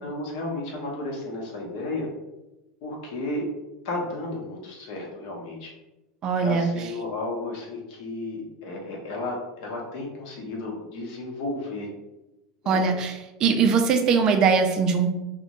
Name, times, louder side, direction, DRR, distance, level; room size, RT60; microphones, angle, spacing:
voice 1, 0.0-2.1 2.8-3.4 3.8-5.7 6.4-11.9 12.6-12.8, left 2 dB, 60° left, -1 dB, 0.7 m, -33 dB
voice 2, 6.2-6.9 12.7-15.1, right 5 dB, 30° right, 5 dB, 0.3 m, -21 dB
2.6 x 2.1 x 2.9 m, 1.0 s
supercardioid pair, 160°, 2 cm